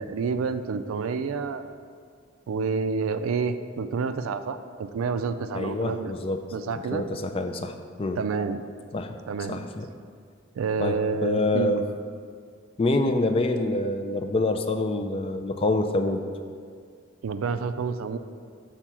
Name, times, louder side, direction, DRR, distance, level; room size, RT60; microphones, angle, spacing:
voice 1, 0.0-1.6 2.5-6.1 6.5-7.0 8.2-8.6 9.3-9.6 10.6-11.8 17.2-18.2, right 5 dB, 80° right, 11 dB, 0.4 m, -28 dB
voice 2, 5.5-8.2 8.9-9.2 9.5-9.9 10.8-11.8 12.8-16.2, left 2 dB, 25° left, 6 dB, 0.3 m, -26 dB
5.8 x 4.4 x 6.1 m, 2.1 s
head